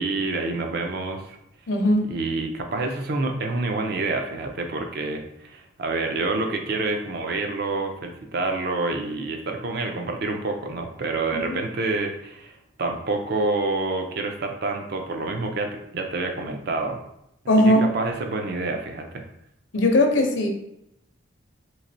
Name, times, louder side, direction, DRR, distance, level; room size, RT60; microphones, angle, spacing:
voice 1, 0.0-1.4 2.1-17.0 17.6-19.2, right 3 dB, 50° right, 4 dB, 0.4 m, -28 dB
voice 2, 1.7-2.1 11.3-11.4 17.5-17.9 19.7-20.5, left 1 dB, 65° left, 3 dB, 0.5 m, -19 dB
3.1 x 2.9 x 2.6 m, 0.80 s
head